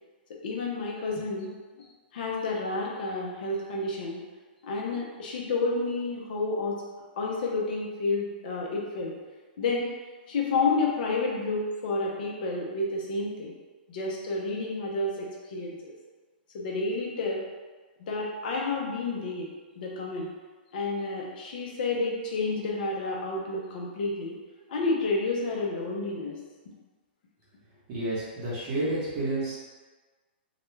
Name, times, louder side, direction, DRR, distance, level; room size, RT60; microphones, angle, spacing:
voice 1, 0.4-1.5 2.1-4.2 4.6-6.8 7.2-9.1 9.6-9.9 10.3-13.5 13.9-15.9 16.5-17.4 18.0-19.5 19.8-20.3 20.7-24.4 24.7-26.4, left 3 dB, 55° left, -2 dB, 0.6 m, -30 dB
voice 2, 27.9-29.6, right 2 dB, 40° right, -8 dB, 0.8 m, -30 dB
2.3 x 2.2 x 3.1 m, 1.4 s
hypercardioid pair, 155°, 6 cm